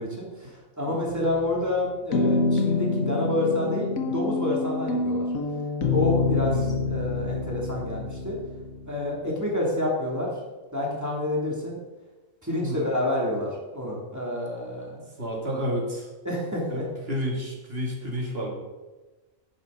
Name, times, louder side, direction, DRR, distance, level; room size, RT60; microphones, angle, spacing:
voice 1, 0.0-5.2 5.9-8.4 8.9-10.3 10.7-11.8 12.4-15.0 16.2-16.8, left 1 dB, 10° right, -3 dB, 2.9 m, -28 dB
sound 1, 1.1-1.7 2.1-9.0, left 3 dB, 85° left, 1.5 m, -27 dB
voice 2, 6.4-6.8 12.6-12.9 15.2-16.1 16.7-16.8 17.1-18.5, equal, 45° right, -2 dB, 2.8 m, -30 dB
11.0 x 10.0 x 4.1 m, 1.2 s
omnidirectional pair, 1.4 m